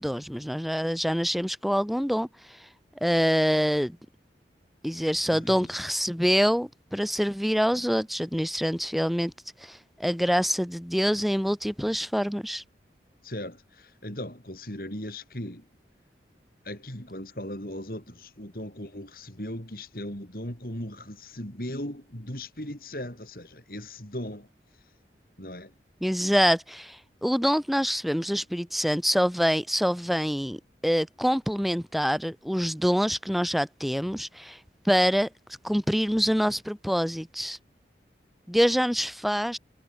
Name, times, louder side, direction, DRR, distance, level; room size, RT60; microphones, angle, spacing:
voice 1, 0.0-2.7 3.0-4.0 4.8-9.3 9.6-12.6 26.0-34.6 34.8-35.3 35.6-37.6 38.5-39.6, equal, ahead, 3.2 m, -26 dB
voice 2, 5.3-5.7 13.2-15.6 16.6-24.5 25.4-25.7, left 1 dB, 55° left, 6.7 m, -38 dB
head